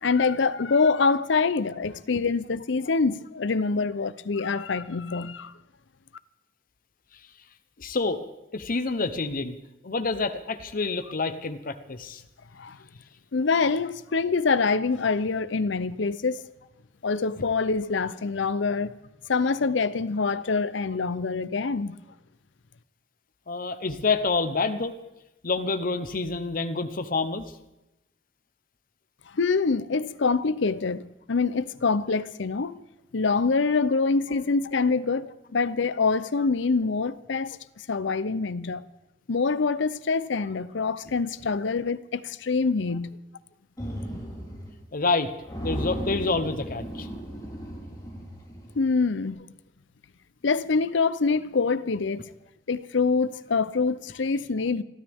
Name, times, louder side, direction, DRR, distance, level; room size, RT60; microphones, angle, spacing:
voice 1, 0.0-5.5 12.5-12.8 13.3-16.4 17.0-19.0 19.3-22.0 29.3-32.8 33.1-38.8 39.3-43.2 48.8-49.4 50.4-52.3 52.7-54.8, left 4 dB, 70° left, 0.6 m, -25 dB
voice 2, 7.8-8.2 8.5-9.5 9.8-12.2 23.5-24.9 25.4-27.5 34.3-34.4 44.9-45.3 45.6-47.1, left 3 dB, 50° left, 0.9 m, -27 dB
sound 1, 43.8-44.8 45.1-45.2 45.5-48.9, equal, 20° left, 4.1 m, -35 dB
28.5 x 13.0 x 3.6 m
head